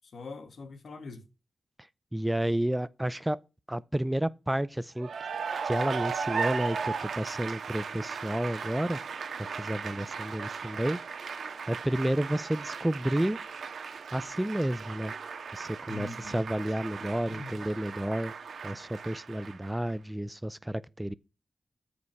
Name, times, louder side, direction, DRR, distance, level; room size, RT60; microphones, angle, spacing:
voice 1, 0.1-1.3 15.9-16.4 17.0-17.6, left 3 dB, 70° left, 1.9 m, -43 dB
voice 2, 2.1-3.4 3.7-5.1 5.6-9.0 9.4-11.0 11.7-13.4 14.1-15.1 15.5-18.3 18.6-21.1, right 1 dB, 10° right, 0.5 m, -31 dB
Cheering / Applause, 5.0-19.9, right 5 dB, 85° right, 1.5 m, -37 dB
14.0 x 5.1 x 4.7 m
wide cardioid pair, 100°, 0 cm